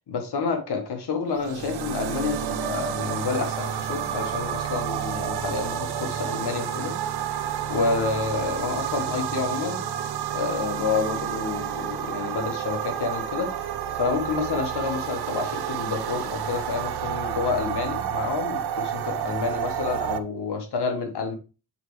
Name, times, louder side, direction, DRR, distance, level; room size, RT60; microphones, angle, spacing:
voice 1, 0.1-6.9 7.7-9.8 10.3-13.5 13.9-21.3, left 4 dB, 80° left, 5 dB, 1.5 m, -29 dB
sound 1, 1.3-20.2, right 9 dB, 80° right, 0.7 m, -30 dB
8.0 x 4.6 x 3.3 m, 0.33 s
wide cardioid pair, 135°, 39 cm